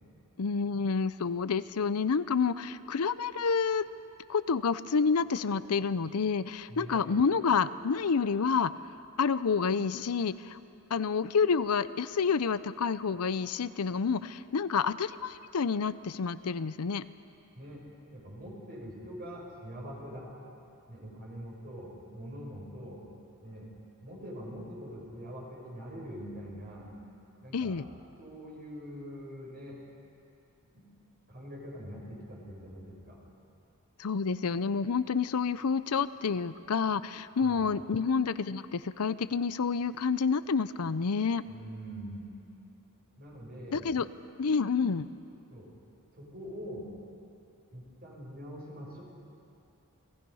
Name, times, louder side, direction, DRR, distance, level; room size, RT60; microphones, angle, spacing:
voice 1, 0.4-3.9 4.3-8.7 9.2-10.6 10.9-17.1 27.5-27.8 34.0-41.4 43.7-44.1 44.4-45.1, left 5 dB, 80° left, 14 dB, 0.6 m, -29 dB
voice 2, 6.7-7.0 17.5-17.8 18.1-20.3 20.9-23.0 23.4-23.7 24.0-26.9 27.4-29.8 30.7-30.8 31.3-33.2 37.4-37.7 41.4-42.2 43.2-43.9 45.5-45.7 46.1-46.9 47.7-49.0, equal, 45° right, -3 dB, 6.8 m, -44 dB
29.5 x 20.0 x 5.6 m, 2.7 s
head